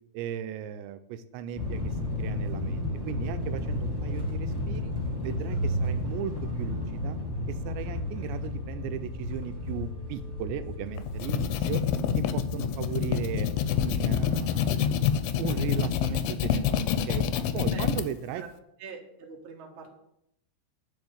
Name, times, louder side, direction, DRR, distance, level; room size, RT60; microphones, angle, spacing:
voice 1, 0.1-4.9 5.2-7.2 7.5-11.8 12.2-13.5 13.8-14.8 15.4-17.3 17.5-18.4, right 10 dB, 85° right, 10 dB, 2.8 m, -37 dB
sound 1, 1.5-15.1, left 1 dB, 10° right, 1.0 m, -33 dB
sound 2, 11.0-18.0, left 9 dB, 80° left, 2.4 m, -27 dB
voice 2, 18.8-19.9, right 5 dB, 55° right, 0 dB, 1.4 m, -43 dB
10.5 x 5.2 x 7.9 m, 0.77 s
omnidirectional pair, 5.2 m